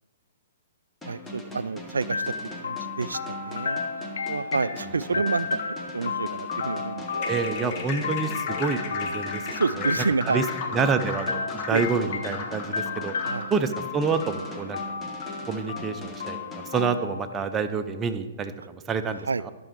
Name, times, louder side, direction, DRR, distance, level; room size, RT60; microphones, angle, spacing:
sound 1, 1.0-17.6, left 1 dB, 10° left, 1.0 m, -41 dB
voice 1, 1.0-2.3 2.6-3.8 4.3-5.6 5.9-7.2 9.5-10.4 11.7-11.9 13.3-13.5 19.3-19.4, right 4 dB, 75° right, 16 dB, 0.3 m, -28 dB
sound 2, 2.1-17.9, left 5 dB, 65° left, 0.8 m, -33 dB
sound 3, 7.1-13.6, left 5 dB, 35° left, 1.0 m, -36 dB
voice 2, 7.3-9.4 9.8-9.9 10.3-10.4 10.7-13.1 13.5-14.8 15.5-19.5, right 5 dB, 15° right, 8 dB, 0.6 m, -28 dB
12.0 x 6.3 x 4.5 m, 1.3 s
figure-of-eight pair, 120°, 0 cm